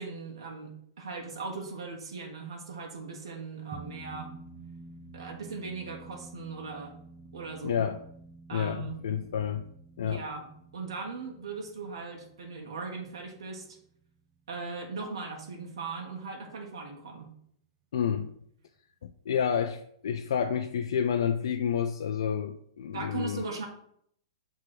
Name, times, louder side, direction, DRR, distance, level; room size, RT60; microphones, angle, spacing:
voice 1, 0.0-4.3 5.1-7.0 7.3-7.8 8.5-9.0 10.0-10.5 10.7-13.8 14.5-17.3 22.9-23.7, right 4 dB, 90° right, 0 dB, 1.4 m, -39 dB
sound 1, 3.7-14.4, right 3 dB, 20° right, 0.5 m, -50 dB
voice 2, 7.6-8.0 8.5-9.6 10.0-10.2 17.9-18.3 19.0-23.4, left 8 dB, 70° left, 5 dB, 0.5 m, -29 dB
6.1 x 3.5 x 4.9 m, 0.68 s
hypercardioid pair, 175°, 3 cm